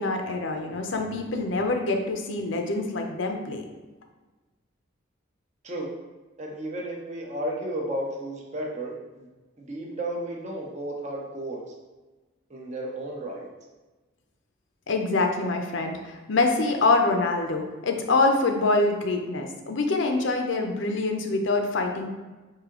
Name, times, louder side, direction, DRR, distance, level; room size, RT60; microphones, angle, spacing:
voice 1, 0.0-3.7 14.9-22.1, left 3 dB, 70° left, 3 dB, 0.6 m, -25 dB
voice 2, 6.4-9.3 9.6-11.6 12.5-13.5, right 1 dB, 35° right, -1 dB, 0.7 m, -33 dB
4.9 x 2.7 x 3.7 m, 1.2 s
head